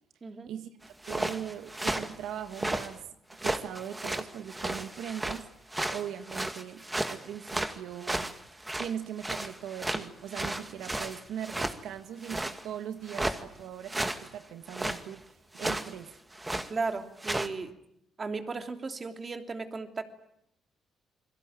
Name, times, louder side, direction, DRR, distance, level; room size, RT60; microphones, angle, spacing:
sound 1, 0.9-3.0 3.3-5.4 5.7-8.9 9.2-11.8 12.2-12.7 13.1-13.4 13.9-14.3 14.7-15.0 15.6-15.9 16.3-16.7 17.2-17.5, right 1 dB, 15° right, 2.2 m, -33 dB
voice 1, 1.0-3.1 3.4-5.5 5.9-8.3 8.8-16.2, right 9 dB, 85° right, 1.6 m, -40 dB
voice 2, 16.7-17.7 18.2-20.0, right 4 dB, 35° right, 3.2 m, -35 dB
28.0 x 22.5 x 9.0 m
cardioid pair, 90°, 0 cm